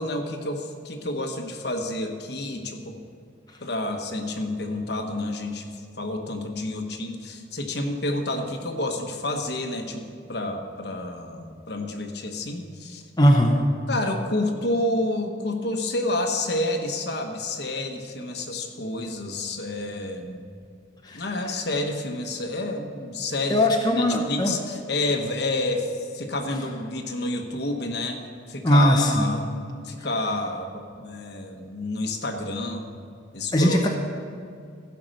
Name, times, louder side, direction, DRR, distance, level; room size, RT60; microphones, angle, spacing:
voice 1, 0.0-3.0 3.6-13.0 13.9-20.4 21.1-23.6 23.9-28.2 28.5-32.9 33.3-33.9, left 2 dB, 55° left, 4 dB, 1.1 m, -29 dB
voice 2, 13.2-13.6 21.0-21.2 23.5-24.5 28.6-29.4 33.5-33.9, equal, 20° left, 0 dB, 0.8 m, -19 dB
15.5 x 5.8 x 6.5 m, 2.4 s
head